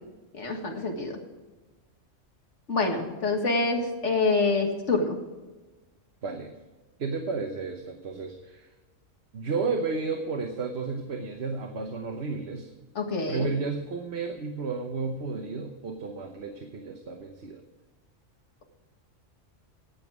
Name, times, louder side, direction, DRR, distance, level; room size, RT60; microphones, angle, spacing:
voice 1, 0.3-1.2 2.7-5.2 13.0-13.5, left 3 dB, 70° left, 3 dB, 2.1 m, -26 dB
voice 2, 6.2-6.5 7.0-8.7 9.3-12.7 13.3-17.6, right 4 dB, 60° right, 4 dB, 1.3 m, -32 dB
18.0 x 7.1 x 4.9 m, 1.2 s
omnidirectional pair, 1.3 m